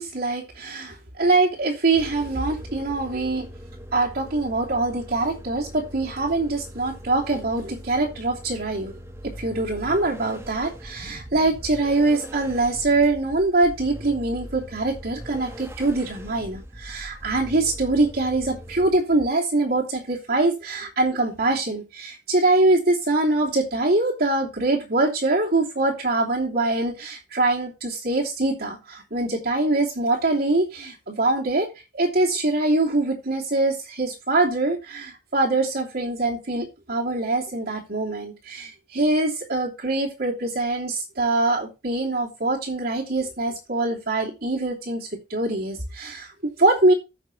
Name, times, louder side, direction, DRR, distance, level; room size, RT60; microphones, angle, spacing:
voice 1, 0.0-3.5 3.9-8.9 9.4-31.7 31.9-46.9, right 2 dB, 65° right, -4 dB, 3.1 m, -23 dB
sound 1, 2.0-18.9, equal, 15° right, 1.5 m, -41 dB
15.0 x 6.1 x 3.2 m, 0.27 s
head